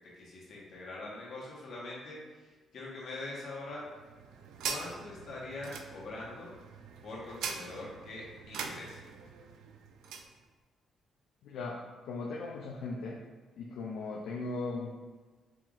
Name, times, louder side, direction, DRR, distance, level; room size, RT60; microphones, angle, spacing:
voice 1, 0.2-3.8 4.6-6.6 7.0-9.0, left 2 dB, 65° left, -4 dB, 1.3 m, -43 dB
sound 1, 3.7-10.3, right 6 dB, 85° right, 0.3 m, -43 dB
voice 2, 11.4-13.2 13.6-14.9, left 3 dB, 80° left, -1 dB, 0.4 m, -38 dB
4.4 x 3.8 x 2.5 m, 1.3 s
cardioid pair, 90°, 0 cm